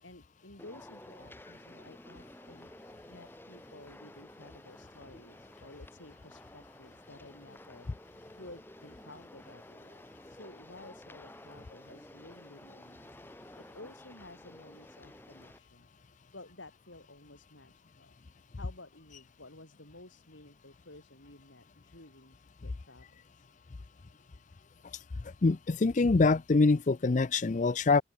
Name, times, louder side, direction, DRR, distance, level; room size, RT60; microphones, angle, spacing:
voice 1, 0.0-2.7 3.1-7.9 8.3-13.1 13.6-15.9 16.3-18.2 18.6-23.5, left 2 dB, 85° left, 6.1 m, -53 dB
sound 1, 0.6-15.6, left 1 dB, 10° left, 2.6 m, -52 dB
voice 2, 25.4-28.0, left 3 dB, 40° left, 0.5 m, -24 dB
open air
head